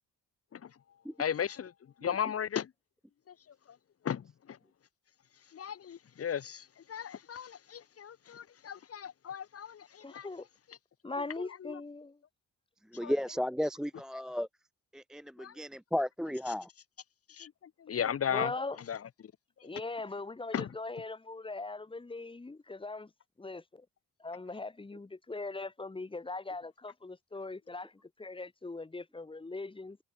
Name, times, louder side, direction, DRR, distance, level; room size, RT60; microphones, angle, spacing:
voice 1, 1.2-1.7 2.0-2.7 4.0-4.2 5.5-10.3 11.6-11.7 13.0-13.1 15.4-15.5 17.4-17.5 17.8-18.5 18.9-19.0 20.5-20.7, left 8 dB, 45° left, 1.3 m, -35 dB
voice 2, 10.0-10.4 11.0-12.2 18.3-18.8 19.6-23.1 23.4-23.9 24.2-27.9 28.2-30.0, left 3 dB, 15° left, 2.3 m, -40 dB
voice 3, 12.9-14.5 14.9-16.7, equal, ahead, 0.5 m, -34 dB
cardioid pair, 135°, 33 cm